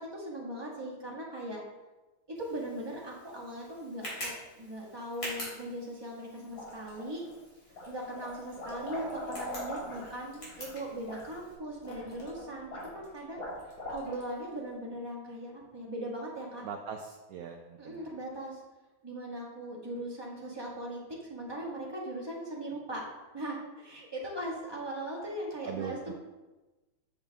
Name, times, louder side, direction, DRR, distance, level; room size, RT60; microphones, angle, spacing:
voice 1, 0.0-1.6 2.4-7.2 7.9-13.4 13.9-16.6 17.8-18.6 19.0-21.0 21.3-23.1 23.3-26.1, right 1 dB, 15° right, -4 dB, 1.8 m, -39 dB
Tick, 2.4-11.5, equal, 50° left, 3.6 m, -46 dB
sound 1, 6.5-7.3 7.7-14.4, left 1 dB, 80° left, 2.9 m, -42 dB
voice 2, 16.6-18.1 25.6-26.1, right 7 dB, 70° right, 3 dB, 0.8 m, -40 dB
8.2 x 7.1 x 3.6 m, 1.1 s
omnidirectional pair, 2.1 m